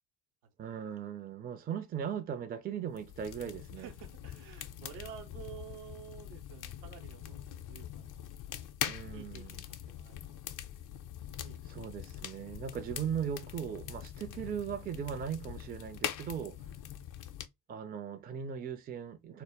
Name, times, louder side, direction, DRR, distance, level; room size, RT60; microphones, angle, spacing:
voice 1, 0.6-3.9 8.9-9.6 11.7-16.7 17.7-19.4, right 8 dB, 20° right, 0.4 m, -38 dB
sound 1, 2.9-17.5, left 10 dB, 40° left, 0.4 m, -43 dB
voice 2, 3.8-8.7 9.1-10.4 11.2-11.6 12.8-12.9, right 10 dB, 80° right, 0.8 m, -51 dB
2.0 x 2.0 x 3.3 m
hypercardioid pair, 60°, 49 cm